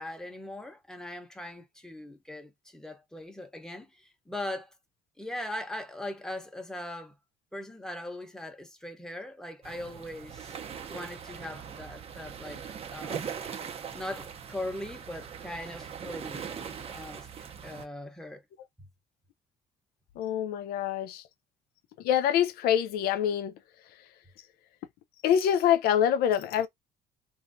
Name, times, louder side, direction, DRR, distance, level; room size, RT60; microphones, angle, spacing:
voice 1, 0.0-4.7 5.2-7.2 7.5-10.6 10.9-12.6 12.9-13.4 13.9-16.5 16.9-17.3 17.6-18.4 18.8-18.9, left 1 dB, 5° left, 0.8 m, -40 dB
sound 1, 9.6-17.9, right 7 dB, 40° right, 0.7 m, -41 dB
voice 2, 20.2-21.2 22.0-23.5 25.2-26.7, left 9 dB, 75° left, 0.6 m, -25 dB
3.1 x 2.6 x 2.5 m
cardioid pair, 115°, 16 cm